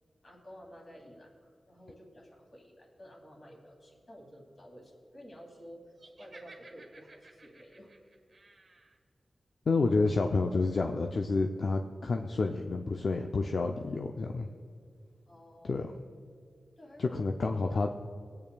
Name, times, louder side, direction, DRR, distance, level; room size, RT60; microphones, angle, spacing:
voice 1, 0.2-5.8 6.2-7.9 15.3-15.8 16.8-17.2, equal, 45° left, -1 dB, 2.4 m, -52 dB
Laughter, 6.0-9.0, right 3 dB, 60° right, 1.4 m, -56 dB
voice 2, 9.7-14.5 15.6-15.9 17.0-17.9, left 3 dB, 65° left, 3 dB, 0.5 m, -29 dB
19.0 x 8.7 x 2.3 m, 2.2 s
wide cardioid pair, 100°, 0 cm